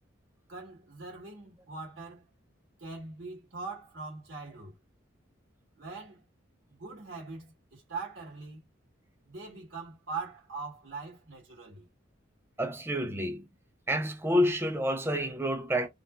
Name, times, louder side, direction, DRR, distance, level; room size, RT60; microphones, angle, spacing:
voice 1, 0.5-2.2 2.8-4.8 5.8-6.2 6.7-8.6 9.2-11.9, right 4 dB, 65° right, 1.6 m, -42 dB
voice 2, 12.6-13.5 13.9-15.9, equal, 10° right, 0.7 m, -28 dB
3.9 x 2.7 x 2.3 m
head